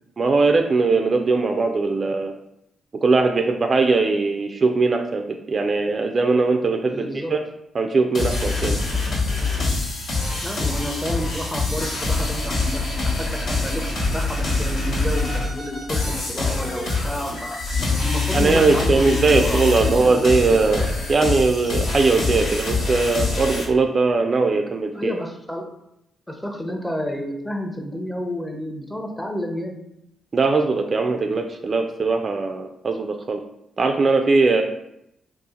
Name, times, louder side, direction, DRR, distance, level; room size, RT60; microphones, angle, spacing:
voice 1, 0.2-2.3 3.0-5.2 5.5-7.4 7.7-8.8 18.3-25.2 30.3-33.4 33.8-34.6, right 3 dB, 45° right, 4 dB, 0.3 m, -20 dB
voice 2, 6.9-7.4 10.4-13.9 14.1-17.6 18.0-20.1 24.9-25.7 26.3-29.8, left 1 dB, 10° left, 2 dB, 0.6 m, -30 dB
sound 1, 8.1-23.6, left 3 dB, 75° left, 1.1 m, -24 dB
2.7 x 2.4 x 3.7 m, 0.79 s
cardioid pair, 65°, 0 cm